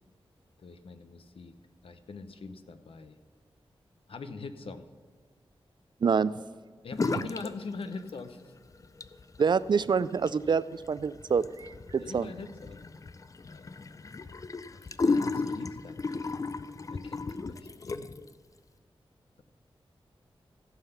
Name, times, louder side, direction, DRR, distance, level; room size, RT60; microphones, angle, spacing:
voice 1, 0.6-1.5 1.8-3.2 4.1-4.9 6.8-8.4 12.0-12.8 13.5-14.0 14.7-16.3 16.9-18.2, left 4 dB, 70° left, 10 dB, 0.7 m, -43 dB
voice 2, 6.0-6.3 9.4-12.3, right 6 dB, 50° right, 17 dB, 0.3 m, -27 dB
sound 1, 6.9-7.5 7.8-8.5 8.8-18.3, left 3 dB, 35° left, 0.4 m, -34 dB
15.0 x 5.8 x 5.7 m, 1.5 s
wide cardioid pair, 100°, 10 cm